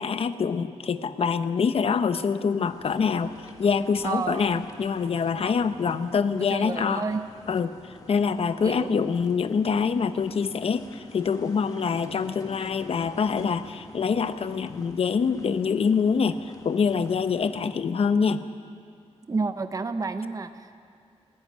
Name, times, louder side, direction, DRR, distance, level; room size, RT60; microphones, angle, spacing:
voice 1, 0.0-7.0 7.5-18.4, left 6 dB, 60° left, 11 dB, 0.9 m, -25 dB
sound 1, 2.5-17.7, left 2 dB, 35° left, 2.0 m, -49 dB
voice 2, 4.0-4.4 5.4-5.5 6.5-7.2 8.6-9.1 12.1-12.2 19.3-20.8, right 4 dB, 30° right, 9 dB, 0.8 m, -30 dB
19.5 x 16.0 x 9.5 m, 2.3 s
wide cardioid pair, 120°, 11 cm